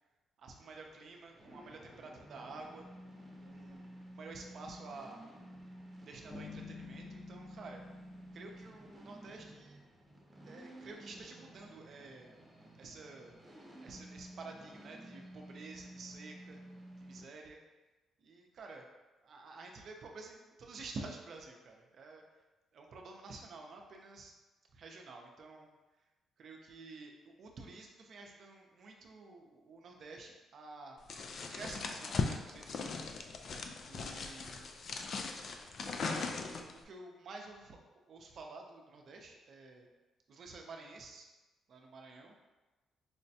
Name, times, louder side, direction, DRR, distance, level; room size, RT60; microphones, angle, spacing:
voice 1, 0.4-2.9 3.4-5.2 6.0-7.8 8.3-9.8 10.4-12.3 12.8-13.3 13.8-16.6 17.0-17.6 18.2-18.9 19.2-22.2 22.7-24.3 24.7-25.7 26.4-27.1 27.4-31.0 31.5-33.0 33.9-34.6 35.8-39.9 40.3-41.3 41.7-42.5, right 3 dB, 60° right, 2 dB, 0.5 m, -50 dB
sound 1, 0.5-17.2, right 1 dB, 15° right, 0.8 m, -53 dB
sound 2, 6.3-9.3, left 5 dB, 35° left, 1.0 m, -51 dB
sound 3, 31.1-36.8, left 4 dB, 55° left, 0.3 m, -39 dB
4.8 x 2.1 x 2.7 m, 1.2 s
cardioid pair, 90°, 0 cm